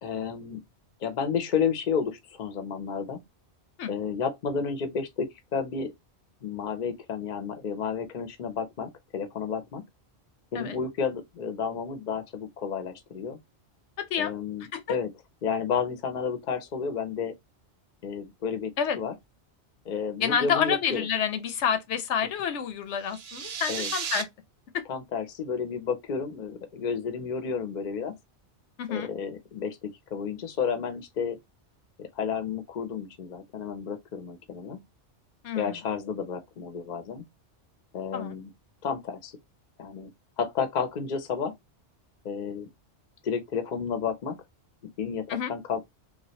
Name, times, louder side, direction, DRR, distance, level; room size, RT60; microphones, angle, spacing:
voice 1, 0.0-0.6 1.0-3.2 3.9-5.9 6.4-9.8 10.5-13.4 14.2-15.1 15.4-17.3 18.0-18.7 19.0-19.1 19.9-21.1 23.7-23.9 24.9-28.1 28.9-31.4 32.0-34.8 35.5-37.2 37.9-38.5 38.8-39.3 39.8-40.1 40.4-41.5 42.2-42.7 43.2-44.4 45.0-45.8, left 6 dB, 50° left, 0.7 m, -31 dB
voice 2, 14.0-14.3 14.7-15.0 18.8-19.0 20.2-24.3 24.7-24.8 28.8-29.1 35.4-35.7 38.1-38.3 45.3-45.5, left 8 dB, 80° left, 0.9 m, -28 dB
sound 1, 23.0-24.2, right 7 dB, 65° right, 0.8 m, -34 dB
3.2 x 2.4 x 2.8 m
omnidirectional pair, 1.2 m